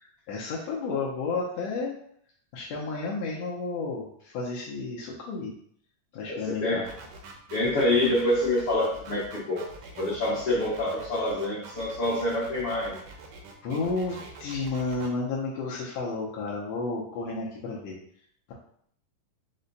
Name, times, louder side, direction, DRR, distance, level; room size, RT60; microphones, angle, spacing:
voice 1, 0.3-1.9 2.5-5.5 6.1-6.8 13.6-18.0, left 3 dB, 80° left, -5 dB, 1.5 m, -32 dB
voice 2, 6.2-6.9 7.5-9.6 9.9-13.0, left 1 dB, 60° left, -9 dB, 1.5 m, -26 dB
sound 1, 6.8-15.1, right 4 dB, 80° right, 2.2 m, -45 dB
5.4 x 2.2 x 3.9 m, 0.65 s
omnidirectional pair, 3.9 m